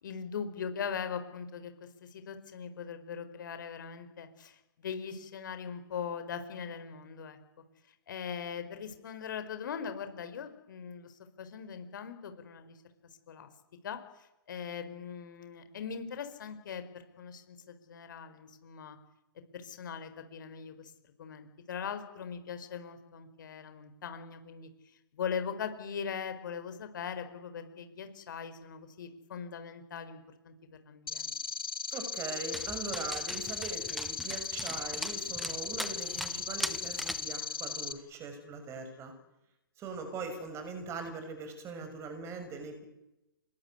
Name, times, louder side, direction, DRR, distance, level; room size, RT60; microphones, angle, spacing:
voice 1, 0.0-7.4 8.1-12.8 13.3-13.5 13.8-19.0 19.5-20.9 21.2-24.7 25.1-31.3, left 7 dB, 60° left, 9 dB, 4.8 m, -40 dB
sound 1, 31.1-37.9, left 6 dB, 75° left, 2.1 m, -37 dB
voice 2, 31.9-39.1 39.8-42.8, right 4 dB, 20° right, 8 dB, 6.5 m, -41 dB
Dog, 32.5-37.3, equal, ahead, 1.0 m, -41 dB
26.5 x 22.0 x 9.7 m, 0.94 s
figure-of-eight pair, 125°, 12 cm